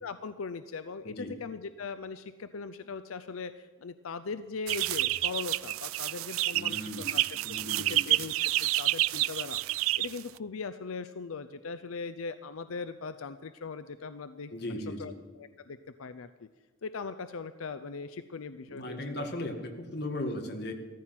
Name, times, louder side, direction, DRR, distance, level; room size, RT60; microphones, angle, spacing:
voice 1, 0.0-7.4 7.7-9.6 10.0-16.5 16.8-19.3, left 4 dB, 90° left, 11 dB, 0.6 m, -40 dB
sound 1, 4.7-10.4, right 16 dB, 85° right, 0.4 m, -29 dB
voice 2, 6.5-7.2 7.4-8.1 14.5-15.1 18.7-20.7, left 1 dB, 50° left, 3 dB, 1.9 m, -37 dB
14.0 x 14.0 x 5.9 m, 1.3 s
head